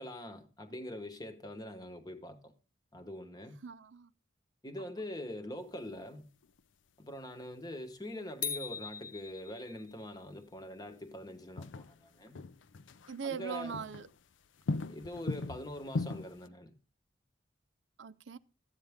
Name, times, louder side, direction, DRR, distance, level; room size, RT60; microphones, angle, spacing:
voice 1, 0.0-2.5 2.9-3.6 4.6-6.3 7.0-12.4 13.2-13.8 14.8-16.7, left 1 dB, 20° left, 1.0 m, -44 dB
voice 2, 3.6-4.1 13.1-14.1 18.0-18.4, right 6 dB, 80° right, 0.6 m, -40 dB
sound 1, 6.4-6.6 9.8-9.9 11.6-13.2 13.5-14.2 14.4-16.5, left 3 dB, 85° left, 0.5 m, -39 dB
sound 2, 8.4-10.0, left 6 dB, 45° left, 1.0 m, -40 dB
13.0 x 8.8 x 3.5 m
head